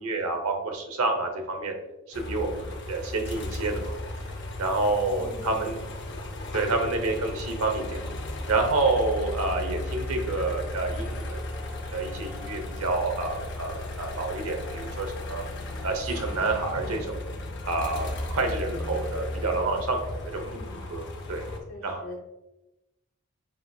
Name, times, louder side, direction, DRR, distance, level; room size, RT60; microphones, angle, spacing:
voice 1, 0.0-1.7 2.1-3.9 4.6-5.8 6.5-8.0 8.5-11.4 11.9-15.4 15.8-17.2 17.7-21.5 21.8-22.0, right 3 dB, 90° right, 4 dB, 0.8 m, -28 dB
sound 1, 2.1-21.6, left 1 dB, 55° left, 0.7 m, -35 dB
voice 2, 5.2-5.7 6.1-6.3 20.4-20.9 21.7-22.2, left 1 dB, 75° left, 0 dB, 1.3 m, -44 dB
7.6 x 2.7 x 2.3 m, 0.97 s
head